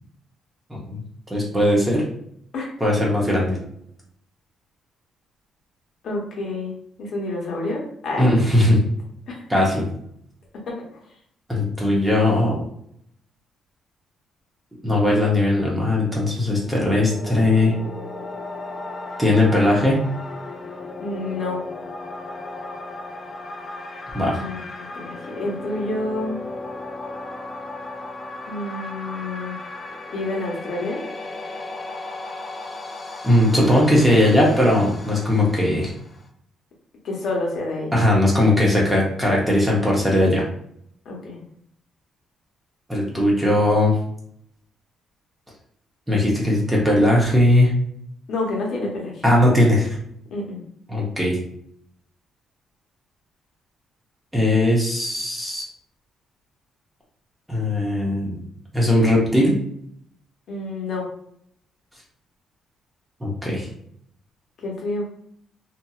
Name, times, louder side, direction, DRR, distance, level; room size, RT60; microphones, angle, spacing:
voice 1, 0.7-1.0 1.3-2.0 2.8-3.6 8.2-8.8 9.5-9.8 11.5-12.6 14.8-17.7 19.2-20.0 24.1-24.3 33.2-35.9 37.9-40.4 42.9-43.9 46.1-47.7 49.2-50.0 50.9-51.4 54.3-55.6 57.5-58.4 58.7-59.6 63.2-63.7, left 1 dB, 5° right, -3 dB, 0.8 m, -19 dB
voice 2, 6.0-8.4 9.3-9.5 10.5-10.9 21.0-21.6 24.3-26.4 28.5-29.6 30.1-31.0 37.0-37.9 41.0-41.4 48.3-49.2 50.3-50.6 60.5-61.1 64.6-65.1, left 2 dB, 60° left, -2 dB, 0.9 m, -29 dB
sound 1, 16.4-36.3, left 2 dB, 30° left, 0.4 m, -35 dB
2.7 x 2.5 x 2.3 m, 0.68 s
cardioid pair, 130°, 0 cm